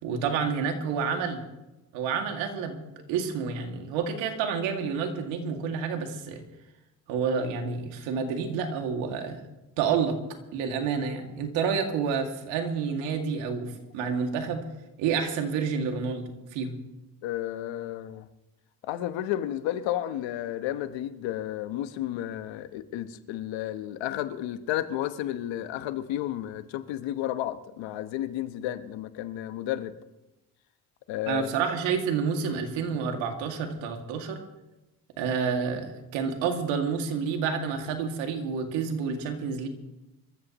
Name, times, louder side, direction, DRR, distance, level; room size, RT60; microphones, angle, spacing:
voice 1, 0.0-1.5 1.9-6.4 7.1-9.4 9.8-10.2 10.5-14.6 15.0-16.2 16.5-16.8 31.3-34.4 35.2-39.7, right 6 dB, 90° right, 3 dB, 2.3 m, -29 dB
voice 2, 17.2-18.3 18.8-30.0 31.1-31.5, left 13 dB, 80° left, 11 dB, 1.1 m, -32 dB
26.0 x 14.5 x 3.0 m, 0.99 s
supercardioid pair, 60°, 44 cm